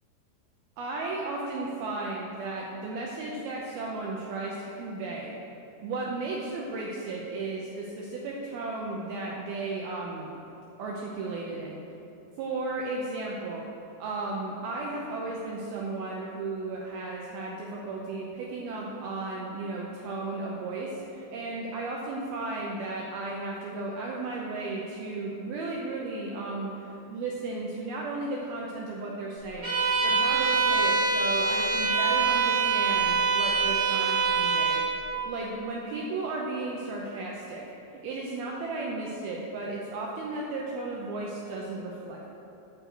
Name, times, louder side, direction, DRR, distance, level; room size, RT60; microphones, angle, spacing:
voice 1, 0.8-5.3 5.8-10.3 10.8-11.8 12.4-13.6 14.0-29.8 30.0-34.8 35.2-37.6 38.0-42.3, right 3 dB, 80° right, -3 dB, 2.3 m, -34 dB
Bowed string instrument, 29.6-34.9, right 5 dB, 25° right, 2.6 m, -24 dB
11.5 x 4.7 x 7.8 m, 2.9 s
omnidirectional pair, 5.2 m